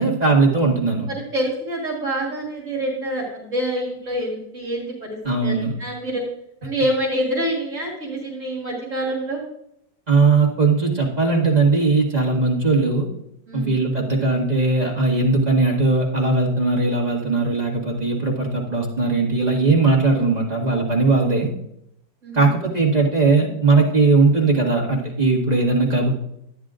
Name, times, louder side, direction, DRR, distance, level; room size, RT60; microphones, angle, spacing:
voice 1, 0.0-1.1 5.2-5.7 10.1-13.1 13.5-21.5 22.3-26.1, right 3 dB, 25° right, -2 dB, 1.7 m, -19 dB
voice 2, 1.1-6.2 6.6-9.4 13.5-13.7 22.2-22.5, right 1 dB, 45° right, -3 dB, 2.3 m, -26 dB
13.0 x 9.5 x 2.5 m, 0.76 s
omnidirectional pair, 2.0 m